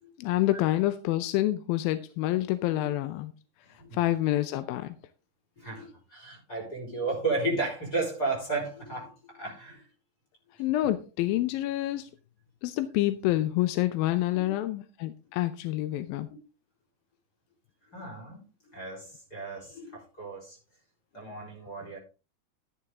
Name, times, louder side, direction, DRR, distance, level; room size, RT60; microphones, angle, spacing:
voice 1, 0.2-3.3 3.9-5.0 10.6-12.1 12.6-16.3, left 15 dB, 85° left, 12 dB, 2.5 m, -27 dB
voice 2, 5.6-9.9 10.6-10.9 14.3-14.5 16.3-16.4 17.9-20.6 21.1-22.0, right 3 dB, 25° left, 0 dB, 4.5 m, -34 dB
11.5 x 10.0 x 3.7 m, 0.31 s
omnidirectional pair, 4.1 m